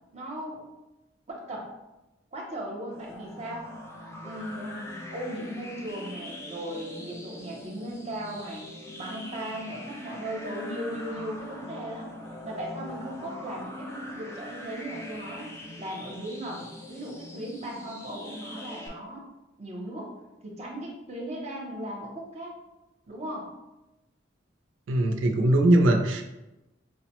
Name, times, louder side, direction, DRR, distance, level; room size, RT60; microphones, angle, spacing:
voice 1, 0.1-0.6 1.3-1.7 2.3-3.7 4.2-8.7 9.0-12.1 12.4-15.5 15.8-19.3 19.6-20.1 20.4-22.6 23.1-23.5, right 1 dB, 35° right, -1 dB, 0.6 m, -37 dB
sound 1, 2.9-18.9, left 1 dB, 15° left, 0.4 m, -42 dB
voice 2, 24.9-26.2, right 1 dB, 80° right, 3 dB, 0.4 m, -21 dB
4.7 x 2.1 x 2.9 m, 1.0 s
head